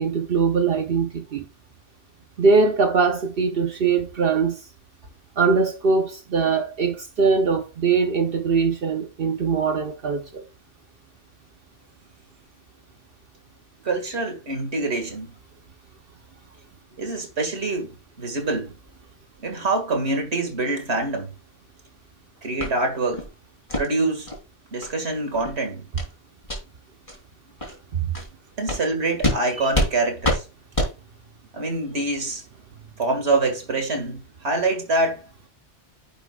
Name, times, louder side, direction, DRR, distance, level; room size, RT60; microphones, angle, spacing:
voice 1, 0.0-1.4 2.4-4.6 5.4-10.4 27.9-28.1 29.6-29.7, right 5 dB, 60° right, 1.0 m, -22 dB
voice 2, 13.8-15.3 17.0-18.7 19.4-21.3 22.4-23.2 23.8-24.3 24.7-25.9 28.6-30.4 31.5-32.4 33.0-35.2, right 2 dB, 85° right, 2.3 m, -25 dB
sound 1, 22.6-22.7 23.1-23.3 23.7-23.9 24.3-24.4 24.8-24.9 25.3-25.5 26.0-26.1 26.4-26.6 27.1-27.2 27.6-27.7 28.1-28.3 28.7-28.8 29.2-29.4 29.7-29.9 30.2-30.4 30.7-30.9, left 1 dB, 30° left, 3.2 m, -25 dB
10.5 x 6.1 x 2.4 m
omnidirectional pair, 1.1 m